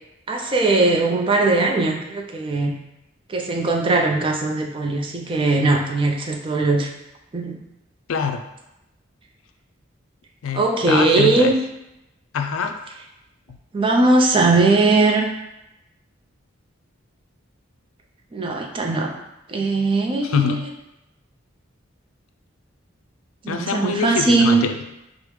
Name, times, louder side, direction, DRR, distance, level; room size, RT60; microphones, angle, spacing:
voice 1, 0.3-2.8 3.3-6.9 7.3-7.6 10.5-11.5 13.7-15.3 18.3-19.1 19.5-20.7 23.4-24.6, right 3 dB, 25° right, 1 dB, 0.4 m, -19 dB
voice 2, 8.1-8.4 10.4-11.5 12.3-12.7 20.2-20.6 23.5-24.8, left 6 dB, 90° left, 6 dB, 0.3 m, -24 dB
4.8 x 2.0 x 3.1 m, 0.91 s
head